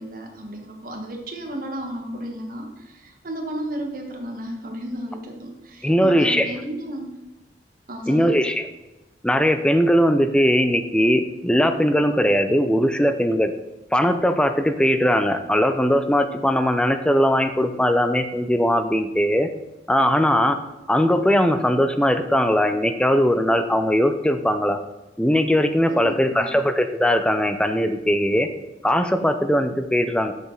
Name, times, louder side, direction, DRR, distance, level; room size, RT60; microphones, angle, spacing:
voice 1, 0.0-7.2 7.9-8.4 25.9-26.5, right 1 dB, 50° right, 2 dB, 1.3 m, -33 dB
voice 2, 5.8-6.5 8.1-8.6 9.2-13.5 13.9-19.5 19.9-20.6 20.9-24.8 25.2-28.5 28.8-30.3, equal, 5° left, 8 dB, 0.4 m, -20 dB
7.0 x 6.4 x 3.9 m, 1.0 s
head